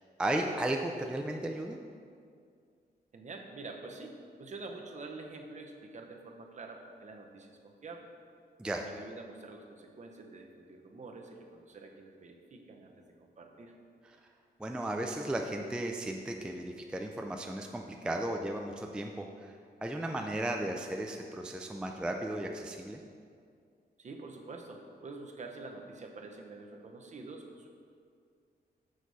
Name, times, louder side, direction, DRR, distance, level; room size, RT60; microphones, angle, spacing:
voice 1, 0.2-1.8 8.6-8.8 14.6-23.0, right 1 dB, 5° right, 3 dB, 0.3 m, -35 dB
voice 2, 3.1-8.1 8.7-12.9 13.2-13.8 24.0-27.7, right 3 dB, 45° right, 2 dB, 0.8 m, -47 dB
6.5 x 6.0 x 4.0 m, 2.2 s
wide cardioid pair, 130°, 17 cm